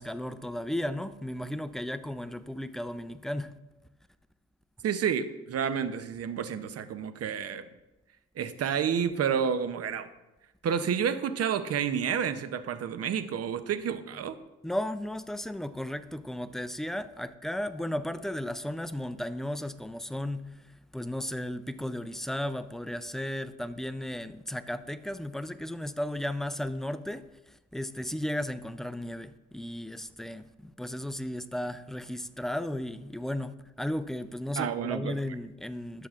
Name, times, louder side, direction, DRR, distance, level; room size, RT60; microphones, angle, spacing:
voice 1, 0.0-3.6 14.6-36.1, left 1 dB, ahead, 12 dB, 0.4 m, -35 dB
voice 2, 4.8-7.6 8.4-10.1 10.6-14.4 34.6-35.2, right 7 dB, 50° right, 12 dB, 0.7 m, -30 dB
12.5 x 6.7 x 2.5 m, 1.0 s
supercardioid pair, 65°, 30 cm